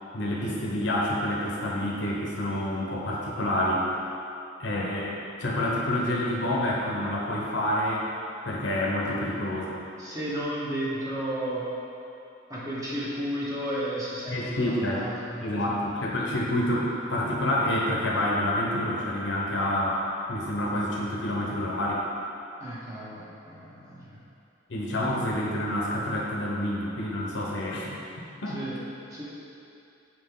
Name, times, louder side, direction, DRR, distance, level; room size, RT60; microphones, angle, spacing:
voice 1, 0.1-3.9 4.6-8.1 8.4-9.8 14.3-15.0 15.4-20.0 20.3-22.0 24.7-28.0 28.4-28.6, left 1 dB, 70° left, -4 dB, 0.9 m, -28 dB
voice 2, 10.0-11.7 12.5-15.8 22.6-24.2 28.5-28.8 29.1-29.2, right 1 dB, 20° right, -8 dB, 1.1 m, -33 dB
6.3 x 4.5 x 3.8 m, 2.7 s
head